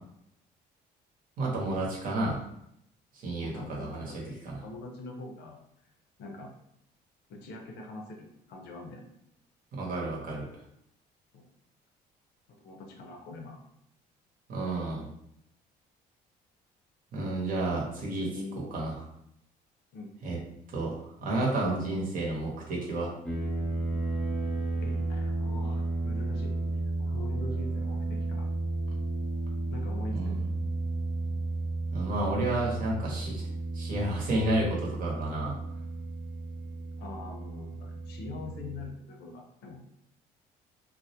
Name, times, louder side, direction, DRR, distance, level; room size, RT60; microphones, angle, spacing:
voice 1, 1.4-2.4 3.2-4.1 4.4-4.6 9.7-10.5 14.5-15.1 17.1-18.3 18.7-18.9 20.2-20.4 20.7-23.1 30.1-30.5 31.9-33.5 33.7-35.6, right 2 dB, 55° right, -2 dB, 0.8 m, -31 dB
voice 2, 3.4-5.6 6.2-6.5 7.3-9.1 11.3-11.4 12.6-13.6 18.2-18.6 19.9-20.1 24.8-26.6 27.0-28.5 29.7-30.4 37.0-39.8, left 2 dB, 70° left, 2 dB, 0.6 m, -43 dB
sound 1, 23.3-38.9, right 2 dB, 5° left, 0.4 m, -33 dB
2.2 x 2.1 x 2.7 m, 0.75 s
cardioid pair, 110°, 17 cm